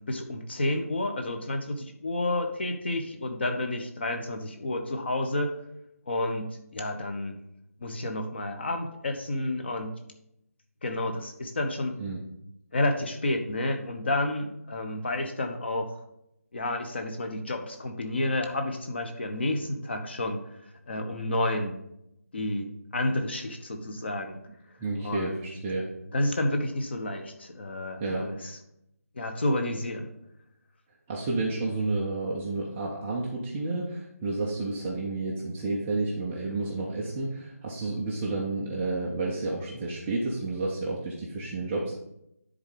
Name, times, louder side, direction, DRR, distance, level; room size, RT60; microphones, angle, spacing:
voice 1, 0.1-5.5 6.1-7.4 7.8-10.0 10.8-12.0 12.7-15.9 16.5-20.4 20.9-21.8 22.3-22.7 22.9-24.4 25.0-25.4 26.1-28.6 29.2-30.1, left 1 dB, 45° left, 5 dB, 1.1 m, -30 dB
voice 2, 24.8-25.9 28.0-28.5 31.1-42.0, right 2 dB, 5° right, -4 dB, 0.3 m, -31 dB
10.0 x 3.8 x 5.1 m, 0.80 s
figure-of-eight pair, 165°, 8 cm